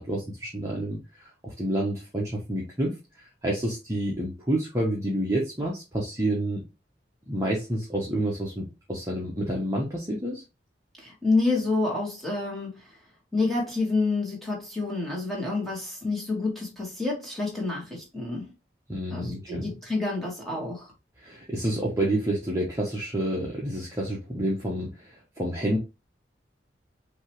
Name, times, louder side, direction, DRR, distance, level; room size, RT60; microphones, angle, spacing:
voice 1, 0.0-6.6 7.3-10.4 18.9-19.7 21.2-25.8, right 1 dB, 15° right, 1.0 m, -29 dB
voice 2, 11.0-13.0 13.3-18.5 19.1-20.9, left 3 dB, ahead, 1.8 m, -28 dB
5.3 x 2.9 x 3.1 m
head